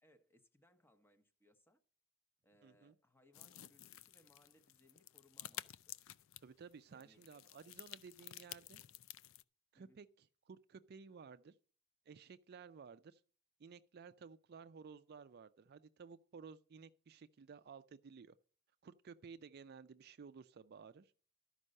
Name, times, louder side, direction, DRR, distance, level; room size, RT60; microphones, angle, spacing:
voice 1, 0.0-1.8 2.4-6.0 6.9-7.2 9.7-10.0, left 1 dB, 10° left, 1.0 m, -70 dB
voice 2, 2.6-3.0 6.4-8.8 9.7-11.5 12.1-13.2 13.6-18.3 18.8-21.1, right 5 dB, 45° right, 0.4 m, -55 dB
sound 1, 3.3-9.4, left 13 dB, 65° left, 0.4 m, -52 dB
12.5 x 5.4 x 6.4 m
head